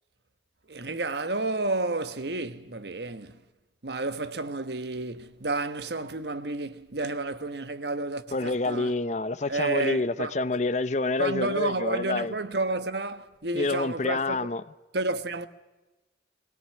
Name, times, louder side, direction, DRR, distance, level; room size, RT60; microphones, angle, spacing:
voice 1, 0.7-3.4 3.8-8.9 9.5-10.3 11.2-14.5 14.9-15.5, right 2 dB, 65° right, 1.3 m, -31 dB
voice 2, 8.3-12.3 13.5-14.6, left 3 dB, 40° left, 0.7 m, -28 dB
22.5 x 17.0 x 9.7 m
head